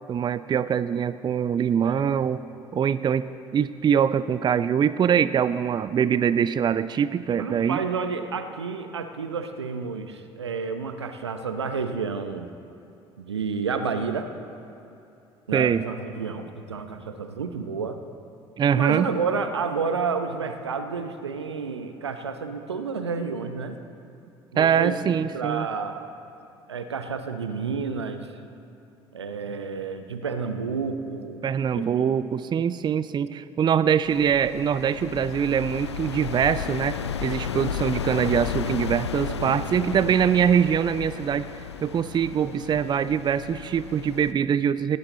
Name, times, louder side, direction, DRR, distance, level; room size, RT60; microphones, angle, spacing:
voice 1, 0.1-2.4 2.7-3.3 3.5-7.8 15.5-15.8 18.6-19.1 24.6-25.7 31.4-41.5 41.8-45.0, right 8 dB, 30° right, 15 dB, 0.5 m, -23 dB
voice 2, 7.4-12.5 13.2-14.3 15.5-18.0 18.7-23.8 24.5-26.0 26.7-28.3 29.1-31.4 31.7-32.2 39.4-40.1, right 5 dB, 85° right, 8 dB, 0.8 m, -30 dB
sound 1, 34.0-44.3, left 7 dB, 85° left, 0.5 m, -33 dB
17.5 x 16.5 x 4.1 m, 2.8 s
figure-of-eight pair, 55°, 14 cm